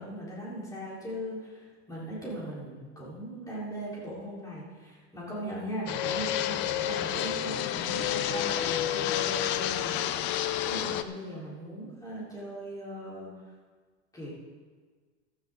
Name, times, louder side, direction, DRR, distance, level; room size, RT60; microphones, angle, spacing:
voice 1, 0.0-10.0 10.6-13.3 14.1-14.3, equal, 10° left, -7 dB, 3.9 m, -39 dB
Fixed-wing aircraft airplane, 5.9-11.0, left 11 dB, 35° left, 0.5 m, -29 dB
15.0 x 13.0 x 3.7 m, 1.5 s
supercardioid pair, 160°, 34 cm